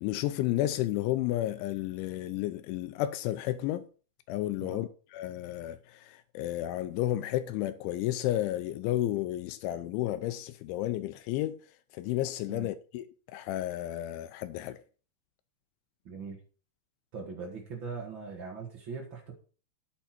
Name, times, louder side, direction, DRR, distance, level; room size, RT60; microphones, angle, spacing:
voice 1, 0.0-3.9 4.3-11.6 11.9-13.1 13.3-14.8, left 14 dB, 85° left, 2.9 m, -32 dB
voice 2, 16.0-16.4 17.1-19.3, right 5 dB, 80° right, 1.0 m, -40 dB
9.1 x 7.1 x 5.9 m
omnidirectional pair, 5.4 m